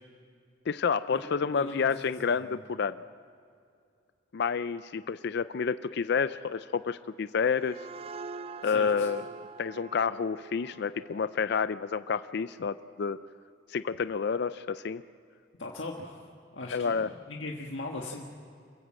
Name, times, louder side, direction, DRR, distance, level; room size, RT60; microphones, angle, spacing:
voice 1, 0.7-3.0 4.3-7.8 8.6-9.3 9.6-13.2 13.7-15.0 16.7-17.1, left 6 dB, 65° left, 13 dB, 0.4 m, -29 dB
voice 2, 1.5-2.6 8.6-9.1 15.6-16.3 16.5-18.3, left 2 dB, 80° left, 0 dB, 1.6 m, -39 dB
sound 1, 7.3-12.7, right 4 dB, 30° right, 0.4 m, -45 dB
26.5 x 16.0 x 7.6 m, 2.4 s
head